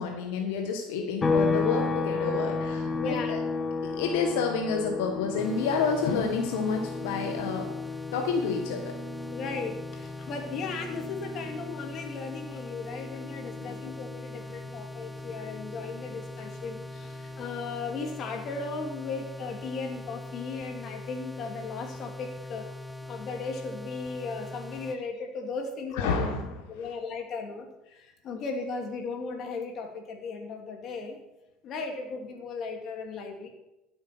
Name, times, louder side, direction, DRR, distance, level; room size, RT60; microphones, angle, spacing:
voice 1, 0.0-3.4 3.8-7.7 8.1-8.9 13.5-13.8 25.9-26.6, left 5 dB, 85° left, 3 dB, 1.5 m, -29 dB
sound 1, 1.2-14.8 15.1-17.3, left 4 dB, 25° left, 2.0 m, -34 dB
voice 2, 2.8-3.3 9.3-22.7 23.1-26.3 26.7-31.2 31.6-33.5, left 4 dB, 50° left, 3 dB, 2.7 m, -36 dB
sound 2, 5.4-25.0, left 1 dB, 5° left, 0.8 m, -42 dB
13.0 x 7.9 x 6.1 m, 0.93 s
supercardioid pair, 105°, 0 cm